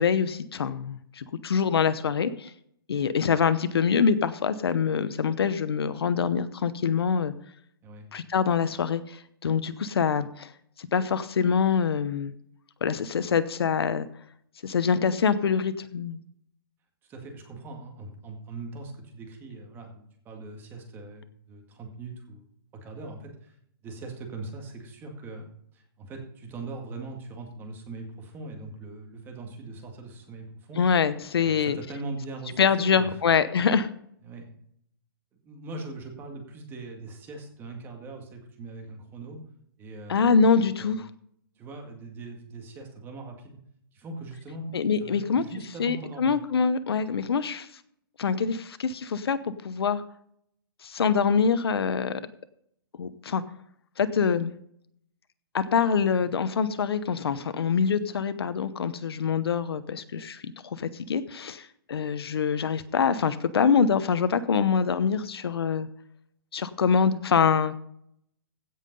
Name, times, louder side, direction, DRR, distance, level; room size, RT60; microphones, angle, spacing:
voice 1, 0.0-2.5 2.9-7.3 8.1-10.5 10.8-12.3 12.8-14.1 14.6-16.2 30.8-31.8 32.6-33.9 40.1-41.0 44.7-45.4 45.8-47.7 48.2-50.0 50.8-52.2 53.0-53.4 54.0-54.5 55.5-65.9 66.5-67.7, left 6 dB, 85° left, 13 dB, 0.8 m, -25 dB
voice 2, 17.0-22.5 22.7-23.6 23.8-25.5 25.7-30.8 31.4-33.2 34.2-34.5 35.4-39.4 39.8-41.0 41.6-43.6 43.9-44.7 45.0-46.4 56.2-56.3, right 3 dB, 15° right, 2 dB, 2.0 m, -41 dB
16.0 x 5.6 x 5.4 m, 0.69 s
hypercardioid pair, 155°, 13 cm